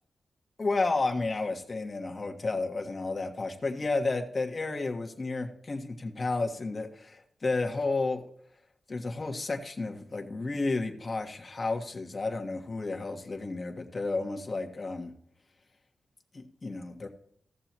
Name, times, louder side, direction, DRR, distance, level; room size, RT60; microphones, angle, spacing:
voice 1, 0.6-8.2 8.9-15.1 16.3-17.1, left 3 dB, 40° left, 3 dB, 1.6 m, -32 dB
16.5 x 6.9 x 3.0 m, 0.69 s
cardioid pair, 85°, 0 cm